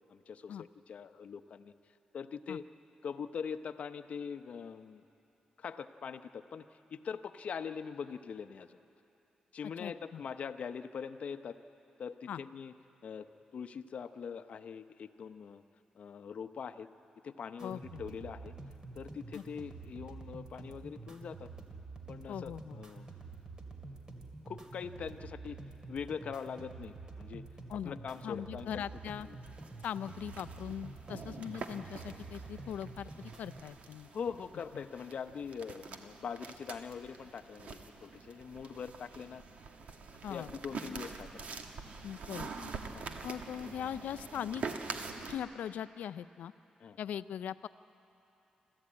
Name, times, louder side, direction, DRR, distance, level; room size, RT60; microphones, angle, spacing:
voice 1, 0.1-1.7 2.1-2.7 3.0-5.0 5.6-6.6 6.9-8.8 9.5-11.6 12.0-12.7 13.0-13.3 13.5-15.6 15.9-16.9 17.2-18.5 18.9-21.5 22.1-23.1 24.4-25.6 25.9-27.4 27.8-28.8 34.1-39.4 40.3-41.3 42.6-43.1 46.8-47.0, left 6 dB, 60° left, 10 dB, 0.7 m, -42 dB
voice 2, 9.8-10.2 12.3-12.4 17.6-18.0 19.3-19.4 22.3-22.8 27.7-28.0 28.2-29.3 29.8-34.1 34.7-34.8 40.2-40.5 42.0-42.5 43.2-44.6 45.3-46.5 47.0-47.7, left 9 dB, 85° left, 14 dB, 0.4 m, -40 dB
sound 1, 17.6-33.6, right 3 dB, 30° right, 2.2 m, -48 dB
sound 2, 28.7-45.4, right 4 dB, 65° right, 1.4 m, -46 dB
26.5 x 13.5 x 8.7 m, 2.9 s
cardioid pair, 110°, 3 cm